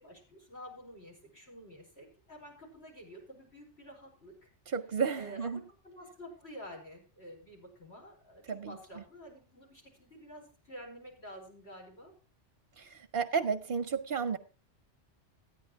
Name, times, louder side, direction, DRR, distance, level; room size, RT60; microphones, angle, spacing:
voice 1, 0.0-4.5 5.1-5.6 5.8-12.1, equal, 65° left, -1 dB, 5.3 m, -50 dB
voice 2, 4.7-5.6 8.5-9.0 12.8-14.4, right 6 dB, 50° right, 6 dB, 0.8 m, -33 dB
13.5 x 9.9 x 4.5 m, 0.37 s
omnidirectional pair, 1.2 m